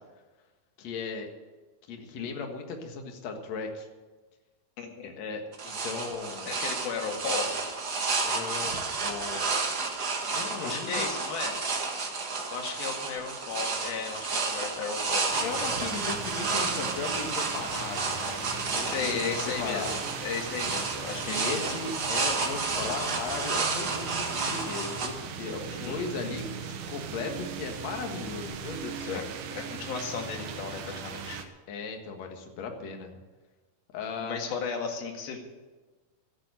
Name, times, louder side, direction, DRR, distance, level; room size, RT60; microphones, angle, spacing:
voice 1, 0.8-1.3 1.9-3.9 5.0-6.5 8.2-8.7 9.0-9.5 10.3-11.1 15.4-19.0 19.2-20.0 21.3-29.2 31.7-33.2 33.9-34.4, left 4 dB, 55° left, 3 dB, 2.6 m, -37 dB
voice 2, 4.8-5.1 6.5-7.5 10.6-11.6 12.5-15.6 18.9-20.0 20.2-21.7 25.7-26.0 29.1-29.2 29.5-31.4 34.2-35.4, left 5 dB, 75° left, 2 dB, 3.8 m, -35 dB
sound 1, 5.5-25.1, right 4 dB, 50° right, 1.2 m, -31 dB
sound 2, 15.3-31.5, right 6 dB, 65° right, 2.2 m, -39 dB
13.0 x 9.3 x 9.1 m, 1.3 s
omnidirectional pair, 4.3 m